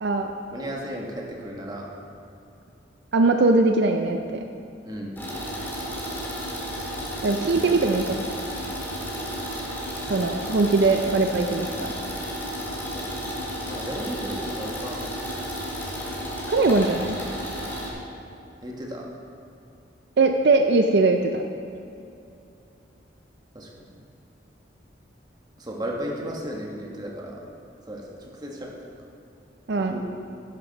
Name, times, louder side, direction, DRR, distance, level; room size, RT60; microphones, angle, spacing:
voice 1, 0.0-0.3 3.1-4.4 7.2-8.3 10.1-11.9 16.5-17.2 20.2-21.4 29.7-30.0, right 3 dB, 65° right, 5 dB, 0.5 m, -21 dB
voice 2, 0.5-1.9 4.8-5.2 12.9-13.3 13.7-15.0 18.6-19.1 23.5-23.7 25.6-27.4 27.9-28.8 29.8-30.0, equal, 20° right, -1 dB, 1.3 m, -34 dB
sound 1, 5.2-17.9, equal, 10° left, 2.0 m, -32 dB
11.0 x 9.9 x 4.0 m, 2.6 s
head